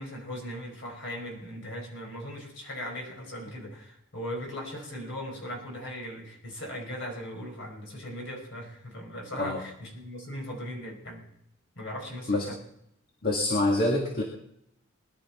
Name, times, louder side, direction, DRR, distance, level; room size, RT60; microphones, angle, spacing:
voice 1, 0.0-11.2 11.8-12.6, equal, 60° left, 1 dB, 5.3 m, -38 dB
voice 2, 13.2-14.2, left 2 dB, 45° left, 0 dB, 1.9 m, -26 dB
21.0 x 11.5 x 4.3 m, 0.78 s
head